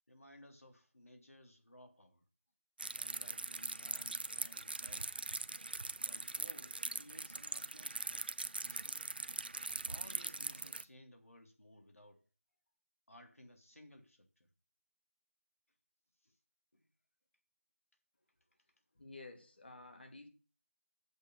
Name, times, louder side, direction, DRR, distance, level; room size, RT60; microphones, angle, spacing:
voice 1, 0.1-2.2 2.8-5.2 6.0-8.4 8.6-9.2 9.7-12.2 13.1-14.5 16.2-16.4 16.7-16.9, left 1 dB, 90° left, 3.2 m, -59 dB
sound 1, 2.8-10.8, right 3 dB, 45° right, 0.6 m, -41 dB
voice 2, 18.9-20.3, left 3 dB, 50° left, 2.4 m, -52 dB
7.9 x 6.3 x 6.7 m
figure-of-eight pair, 170°, 7 cm